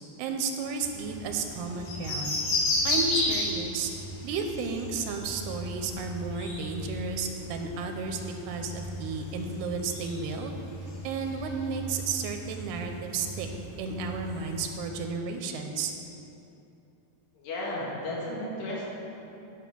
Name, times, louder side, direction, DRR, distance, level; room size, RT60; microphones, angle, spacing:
voice 1, 0.2-2.4 2.8-3.9 4.2-10.5 11.0-13.5 13.8-15.9, right 4 dB, 85° right, 4 dB, 2.6 m, -33 dB
sound 1, 0.8-14.6, left 1 dB, 60° left, 3.1 m, -34 dB
voice 2, 17.4-18.9, left 1 dB, 85° left, -5 dB, 3.8 m, -34 dB
11.0 x 5.6 x 6.0 m, 2.8 s
omnidirectional pair, 4.8 m